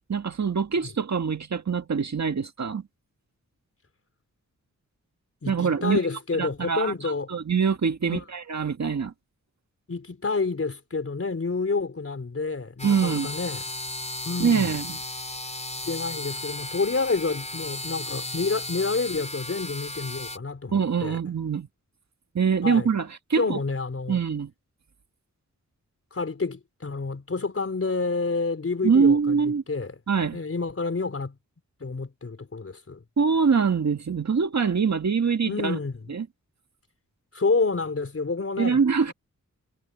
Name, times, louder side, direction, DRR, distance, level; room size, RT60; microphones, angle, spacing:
voice 1, 0.1-2.8 5.5-6.0 6.4-6.9 7.3-9.1 12.8-13.3 14.4-15.0 20.7-21.7 22.4-23.6 24.1-24.5 28.8-29.6 30.1-30.4 33.2-35.8 36.1-36.3 38.6-39.1, right 6 dB, 60° right, 1.8 m, -24 dB
voice 2, 5.4-7.3 8.1-8.2 9.9-13.7 14.3-14.8 15.8-21.2 22.6-22.9 23.3-24.2 26.1-31.4 31.8-33.0 35.4-36.1 37.3-38.8 39.1-39.2, left 4 dB, 45° left, 4.5 m, -29 dB
sound 1, 12.8-20.4, left 2 dB, 20° left, 5.0 m, -35 dB
wide cardioid pair, 110°, 32 cm